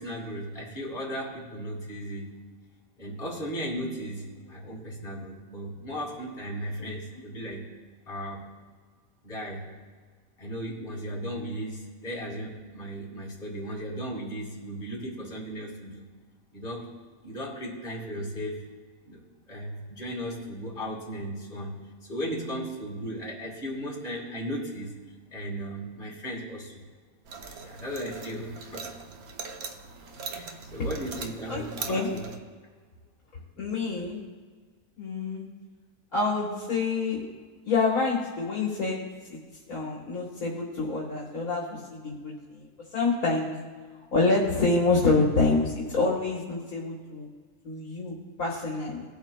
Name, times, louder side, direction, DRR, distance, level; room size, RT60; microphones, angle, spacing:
voice 1, 0.0-2.4 3.0-7.7 8.1-8.4 9.2-9.7 10.4-16.0 16.5-16.9 17.2-18.6 19.1-21.8 22.1-25.0 25.3-26.8 27.6-28.8 30.3-32.3, equal, 35° left, -4 dB, 2.5 m, -36 dB
sound 1, 27.3-32.4, right 5 dB, 75° right, 1.3 m, -41 dB
voice 2, 31.5-32.1 33.6-34.2 35.0-35.5 36.1-37.3 37.6-39.4 39.7-43.6 44.1-47.3 47.6-49.0, left 3 dB, 65° left, -3 dB, 1.7 m, -27 dB
19.5 x 8.2 x 2.3 m, 1.5 s
omnidirectional pair, 1.6 m